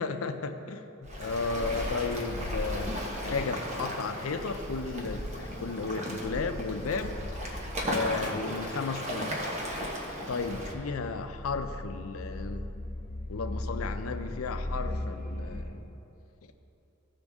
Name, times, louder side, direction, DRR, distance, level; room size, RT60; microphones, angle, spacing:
voice 1, 0.0-7.2 7.8-9.4 10.3-12.7 13.3-16.0, left 4 dB, 85° left, 8 dB, 0.6 m, -34 dB
Waves surf, 1.0-10.7, equal, 35° right, 1.2 m, -35 dB
sound 1, 10.7-15.6, left 1 dB, 40° left, 1.3 m, -37 dB
15.5 x 5.2 x 3.6 m, 2.9 s
head